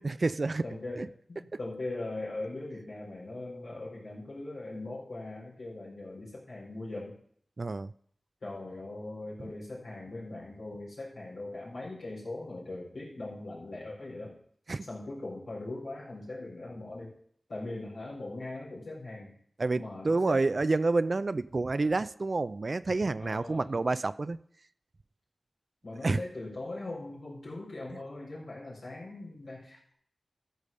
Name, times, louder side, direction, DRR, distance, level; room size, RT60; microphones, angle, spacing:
voice 1, 0.0-0.7 1.0-1.1 7.6-7.9 14.7-14.9 19.6-24.4 26.0-26.2 27.9-28.0, right 3 dB, 60° right, 14 dB, 0.4 m, -29 dB
voice 2, 0.6-7.2 8.4-14.4 14.9-17.2 17.5-19.4 19.7-20.4 23.2-23.8 25.8-29.9, left 2 dB, 90° left, -6 dB, 4.4 m, -40 dB
13.5 x 4.9 x 6.7 m, 0.63 s
cardioid pair, 45°, 0 cm